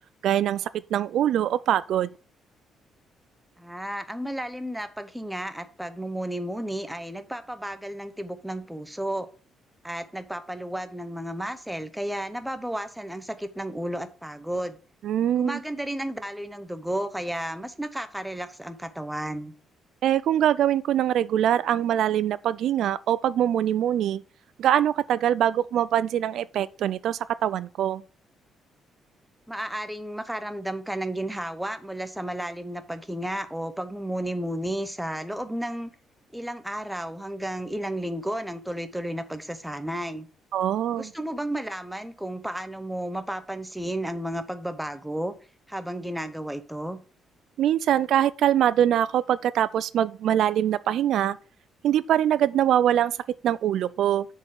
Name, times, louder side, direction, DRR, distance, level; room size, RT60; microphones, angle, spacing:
voice 1, 0.2-2.1 15.0-15.6 20.0-24.2 24.6-28.0 40.5-41.1 47.6-51.4 51.8-53.2 53.4-54.3, right 11 dB, 70° right, 0.3 m, -23 dB
voice 2, 3.6-9.3 9.8-14.8 15.4-19.5 29.5-35.9 36.3-40.3 40.9-45.3 45.7-47.0, right 1 dB, 5° right, 0.8 m, -33 dB
6.9 x 4.6 x 6.3 m
cardioid pair, 135°, 0 cm